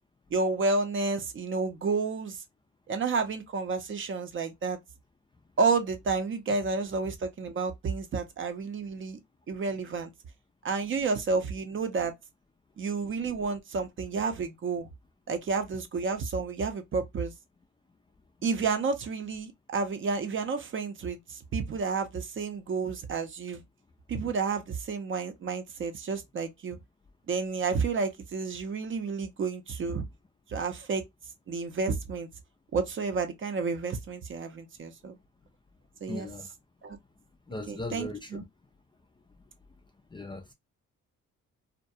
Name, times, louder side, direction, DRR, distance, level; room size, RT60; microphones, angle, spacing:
voice 1, 0.3-2.4 2.9-4.8 5.6-9.2 9.5-10.1 10.6-12.1 12.8-14.9 15.3-17.3 18.4-23.6 24.1-26.8 27.3-30.0 30.5-31.0 31.5-32.3 32.7-35.2 36.0-36.3 36.8-37.0 37.7-38.4, right 4 dB, 40° right, 0.6 m, -30 dB
voice 2, 36.1-36.5 37.5-38.4 40.1-40.5, left 2 dB, 15° left, 0.4 m, -38 dB
2.3 x 2.2 x 2.6 m
cardioid pair, 90°, 30 cm